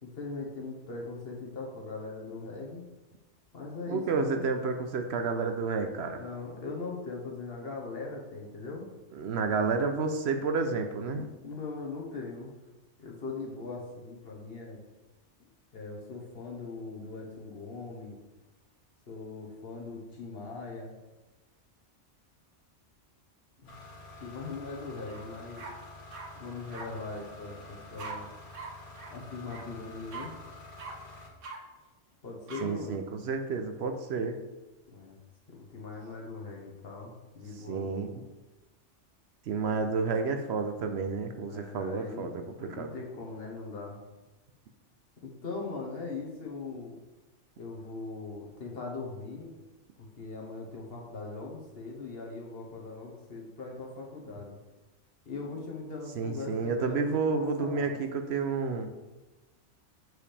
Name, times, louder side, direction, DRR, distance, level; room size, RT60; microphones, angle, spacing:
voice 1, 0.0-2.9 3.5-4.4 6.2-8.9 11.4-12.5 13.0-14.8 15.7-18.2 19.1-20.9 23.6-23.7 24.2-25.6 26.4-28.3 29.1-30.3 32.2-33.0 34.9-35.2 35.5-37.9 41.5-42.3 42.6-44.0 45.2-47.0 47.6-49.5 50.0-54.5 55.2-57.9, left 3 dB, 55° left, -1 dB, 1.4 m, -40 dB
voice 2, 3.9-6.2 9.1-11.3 32.6-34.4 37.7-38.2 39.5-42.9 56.2-58.9, right 4 dB, 65° right, 6 dB, 0.8 m, -30 dB
sound 1, 23.7-31.3, left 2 dB, 75° left, 1.6 m, -48 dB
sound 2, 25.1-25.2 25.6-26.3 26.7-26.9 28.0-28.1 28.5-28.7 28.9-29.1 29.5-29.6 30.1-30.3 30.8-30.9 31.4-31.6 32.5-32.6, right 5 dB, 85° right, 1.4 m, -41 dB
7.7 x 4.9 x 3.3 m, 1.1 s
omnidirectional pair, 1.2 m